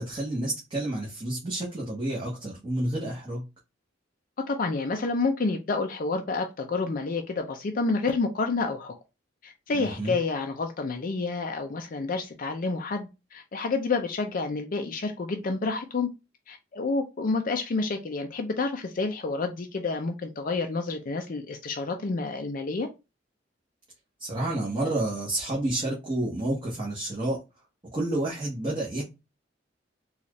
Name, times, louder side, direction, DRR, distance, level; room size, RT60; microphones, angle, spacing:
voice 1, 0.0-3.4 9.7-10.1 24.2-27.4 27.9-29.0, right 1 dB, 25° right, 1.1 m, -30 dB
voice 2, 4.5-8.9 9.4-16.1 16.5-22.9, left 3 dB, 45° left, 0.5 m, -29 dB
4.1 x 2.4 x 3.0 m
head